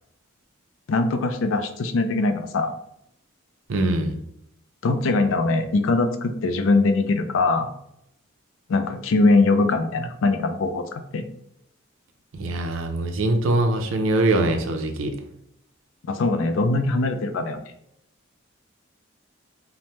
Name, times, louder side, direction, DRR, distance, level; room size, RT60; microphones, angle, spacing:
voice 1, 0.9-2.7 4.8-7.7 8.7-11.2 16.1-17.6, left 3 dB, 75° left, 7 dB, 0.4 m, -22 dB
voice 2, 3.7-4.2 12.3-15.1, right 2 dB, 75° right, 5 dB, 0.4 m, -23 dB
3.2 x 2.0 x 2.8 m, 0.75 s
head